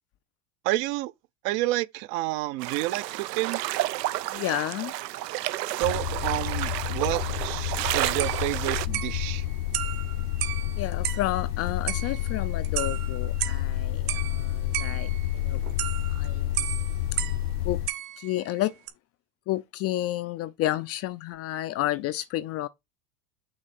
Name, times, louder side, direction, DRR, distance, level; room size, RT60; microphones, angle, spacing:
voice 1, 0.6-1.1 1.4-3.6 5.7-9.5, right 17 dB, 50° right, 0.6 m, -29 dB
sound 1, 2.6-8.9, right 15 dB, 85° right, 0.7 m, -31 dB
voice 2, 4.3-4.9 10.7-15.6 16.1-16.7 17.1-17.2 17.6-17.8 18.2-18.8 19.5-22.7, left 15 dB, 35° left, 0.4 m, -31 dB
sound 2, 5.8-17.9, left 12 dB, 70° left, 0.8 m, -30 dB
sound 3, 8.2-11.4 11.9-13.7 14.1-17.5 17.9-18.5 18.9-19.0, right 14 dB, 70° right, 1.6 m, -35 dB
6.4 x 3.3 x 5.9 m
supercardioid pair, 110°, 48 cm